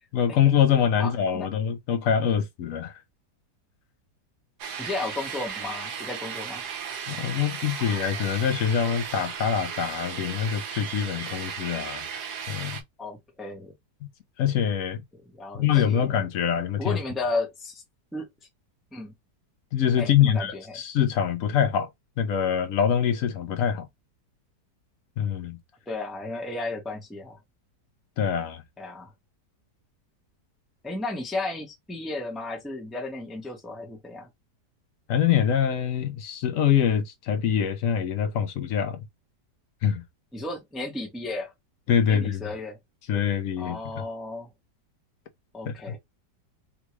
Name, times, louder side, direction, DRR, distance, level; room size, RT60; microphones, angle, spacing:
voice 1, 0.1-3.0 7.1-12.1 12.5-12.8 14.4-15.0 15.5-17.0 19.7-21.9 22.2-23.9 25.2-25.6 28.2-28.6 35.1-39.0 39.8-40.0 41.9-42.4 43.1-44.0 45.7-45.9, left 8 dB, 65° left, 0.8 m, -24 dB
voice 2, 1.0-1.5 4.8-6.6 13.0-13.7 15.2-16.0 16.8-17.8 18.1-18.3 18.9-19.1 20.0-20.8 25.9-27.4 28.8-29.1 30.8-34.3 40.3-41.5 42.1-42.8 43.6-44.5 45.5-46.0, left 2 dB, ahead, 0.7 m, -34 dB
sound 1, 4.6-12.8, right 7 dB, 75° right, 1.2 m, -35 dB
3.6 x 2.3 x 3.1 m
omnidirectional pair, 1.8 m